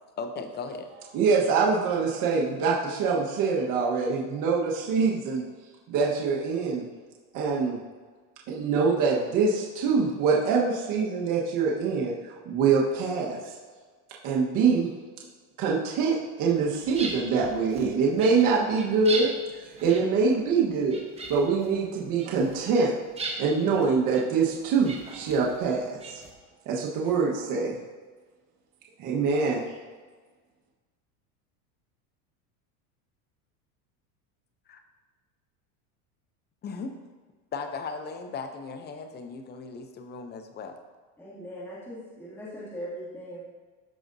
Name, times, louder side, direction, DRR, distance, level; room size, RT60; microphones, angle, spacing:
voice 1, 0.2-0.9 34.7-34.8 36.6-37.0 37.5-40.8, left 4 dB, 25° left, 7 dB, 0.6 m, -37 dB
voice 2, 1.1-5.4 5.9-6.8 7.3-7.8 8.5-13.5 14.2-14.9 15.6-19.3 19.6-21.0 21.3-22.9 23.4-26.2 26.6-27.8 29.0-29.6, right 5 dB, 45° right, -3 dB, 1.3 m, -24 dB
sound 1, 16.5-26.3, right 3 dB, 15° right, 0.9 m, -40 dB
voice 3, 41.2-43.4, equal, 5° left, -10 dB, 2.3 m, -40 dB
14.0 x 5.0 x 2.7 m, 1.4 s
supercardioid pair, 140°, 43 cm